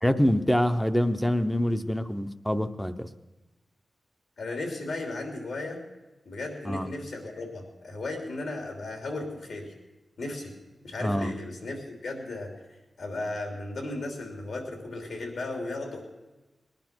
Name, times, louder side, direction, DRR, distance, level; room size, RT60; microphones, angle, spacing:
voice 1, 0.0-3.1 6.6-6.9 11.0-11.4, equal, 5° left, 9 dB, 0.7 m, -25 dB
voice 2, 4.4-5.8 6.2-9.7 10.2-10.5 10.8-12.5 13.0-16.0, left 2 dB, 75° left, 3 dB, 3.2 m, -35 dB
20.0 x 10.5 x 6.1 m, 1.1 s
wide cardioid pair, 160°, 0 cm